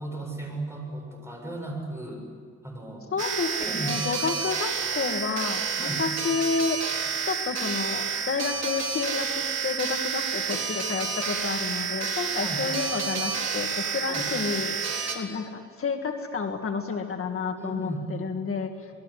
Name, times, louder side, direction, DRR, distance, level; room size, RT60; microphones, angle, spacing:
voice 1, 0.0-2.2 2.6-3.1 3.6-4.0 5.8-6.0 12.4-12.7 14.1-14.3 17.6-18.1, right 1 dB, 10° right, 0 dB, 7.4 m, -35 dB
voice 2, 3.1-6.8 7.2-14.8 15.1-18.9, left 5 dB, 50° left, 4 dB, 1.8 m, -30 dB
sound 1, 3.2-15.1, right 6 dB, 65° right, 4.1 m, -29 dB
27.5 x 20.0 x 9.8 m, 2.1 s
wide cardioid pair, 145°, 29 cm